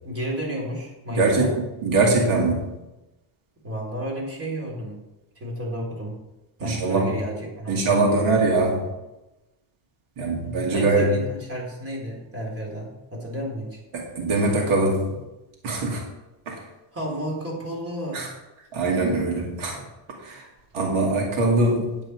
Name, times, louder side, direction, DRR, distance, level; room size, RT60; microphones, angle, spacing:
voice 1, 0.0-1.5 3.6-5.0 5.4-6.2 6.6-8.4 10.3-13.8 16.9-18.3, right 1 dB, 30° right, -2 dB, 3.8 m, -32 dB
voice 2, 1.2-2.7 6.6-7.2 7.7-8.8 10.2-11.2 13.9-15.2 15.6-16.0 16.5-16.6 18.1-18.3 18.7-19.8 20.2-20.4 20.7-22.0, right 2 dB, 90° right, -1 dB, 2.5 m, -22 dB
9.9 x 8.8 x 4.7 m, 1.0 s
cardioid pair, 145°, 47 cm